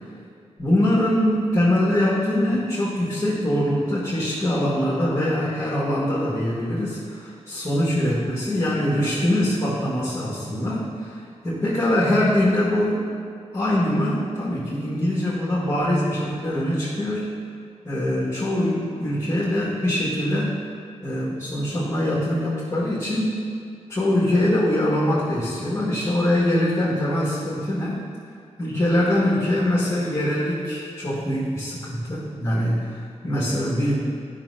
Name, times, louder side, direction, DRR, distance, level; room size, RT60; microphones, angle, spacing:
voice 1, 0.6-11.2 11.4-13.1 13.5-17.4 17.8-20.6 21.0-23.4 23.9-28.0 28.6-33.9, left 1 dB, 25° left, -9 dB, 1.8 m, -23 dB
12.0 x 6.3 x 2.8 m, 2.4 s
wide cardioid pair, 115°, 12 cm